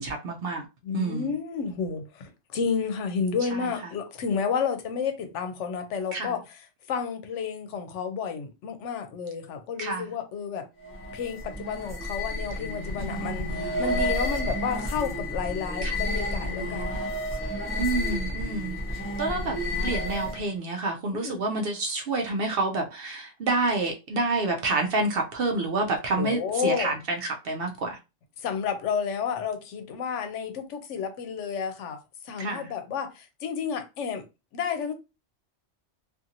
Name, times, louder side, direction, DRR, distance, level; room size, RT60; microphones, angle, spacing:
voice 1, 0.0-0.6 0.9-1.3 6.1-6.4 9.8-10.1 13.0-13.3 15.8-16.0 17.8-19.5 19.8-28.0 32.4-32.7, right 3 dB, 60° right, 0.6 m, -28 dB
voice 2, 0.8-6.4 6.9-10.6 11.1-16.9 21.1-21.4 26.1-27.0 28.4-32.0 32.2-34.2 34.5-34.9, left 6 dB, 80° left, 0.9 m, -31 dB
sound 1, 10.8-20.5, left 1 dB, 10° left, 0.7 m, -31 dB
2.5 x 2.5 x 2.7 m
omnidirectional pair, 1.2 m